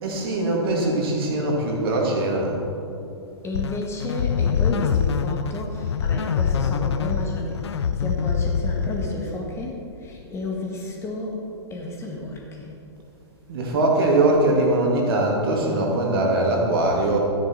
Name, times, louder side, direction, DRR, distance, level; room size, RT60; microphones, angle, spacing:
voice 1, 0.0-2.6 13.5-17.2, right 2 dB, 55° right, -1 dB, 2.6 m, -21 dB
voice 2, 3.4-12.8, left 2 dB, 20° left, -1 dB, 1.8 m, -32 dB
sound 1, 3.5-9.4, left 6 dB, 70° left, 0.5 m, -24 dB
13.0 x 9.9 x 4.6 m, 2.7 s
figure-of-eight pair, 115°, 15 cm